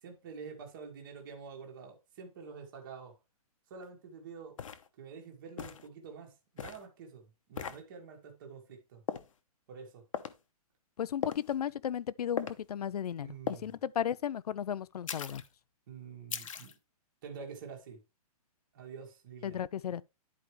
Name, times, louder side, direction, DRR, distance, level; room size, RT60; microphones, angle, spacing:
voice 1, 0.0-3.1 3.7-4.6 5.0-9.0 9.7-10.0 13.2-13.8 15.9-16.7 17.2-18.0 18.7-19.6, right 5 dB, 30° right, 1.6 m, -47 dB
sound 1, 3.8-3.9 4.6-4.9 5.6-5.9 6.6-6.8 7.6-7.8 9.1-9.3 10.1-10.4 11.2-11.5 12.4-12.6 13.5-13.7 15.1-15.5 16.3-16.7, left 8 dB, 55° left, 1.0 m, -38 dB
voice 2, 11.0-13.3 13.6-15.4 19.4-20.0, left 9 dB, 80° left, 0.6 m, -34 dB
11.0 x 4.8 x 3.2 m
hypercardioid pair, 175°, 20 cm